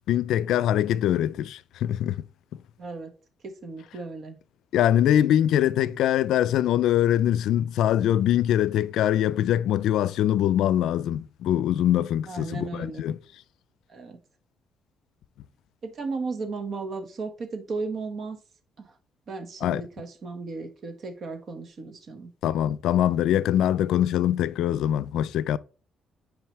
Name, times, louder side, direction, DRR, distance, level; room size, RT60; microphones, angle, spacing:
voice 1, 0.1-2.2 4.7-13.2 19.6-19.8 22.4-25.6, left 11 dB, 85° left, 0.4 m, -23 dB
voice 2, 2.8-3.1 3.4-4.4 12.3-13.0 13.9-14.2 15.8-18.4 18.8-18.9 19.3-22.3, right 3 dB, 55° right, 1.5 m, -35 dB
9.3 x 4.9 x 3.2 m
cardioid pair, 90°, 0 cm